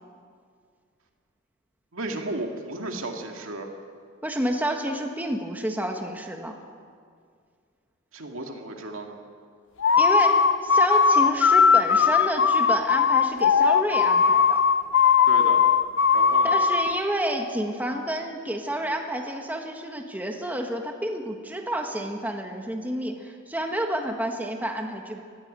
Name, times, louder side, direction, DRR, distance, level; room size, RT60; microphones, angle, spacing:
voice 1, 1.9-3.7 8.1-9.2 15.3-15.7 16.1-16.6, right 2 dB, 75° right, 2 dB, 2.3 m, -34 dB
voice 2, 4.2-6.5 10.0-14.6 16.4-25.2, right 1 dB, 10° right, 2 dB, 1.6 m, -29 dB
sound 1, 9.8-17.0, left 6 dB, 60° left, 0.6 m, -19 dB
20.0 x 15.0 x 9.0 m, 2.1 s
head